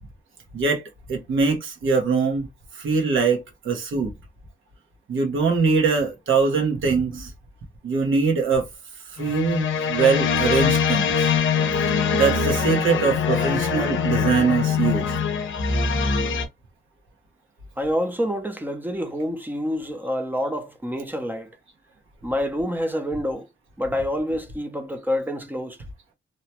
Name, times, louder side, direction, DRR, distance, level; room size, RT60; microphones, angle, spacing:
voice 1, 1.1-2.5 2.7-4.1 5.1-7.3 7.8-8.6 9.1-11.3 12.1-15.1, right 5 dB, 85° right, 1.0 m, -22 dB
sound 1, 9.2-16.4, left 6 dB, 80° left, 0.6 m, -23 dB
voice 2, 17.8-21.5 22.2-23.5 23.8-25.8, equal, 10° right, 0.5 m, -27 dB
2.9 x 2.2 x 2.8 m
wide cardioid pair, 170°, 20 cm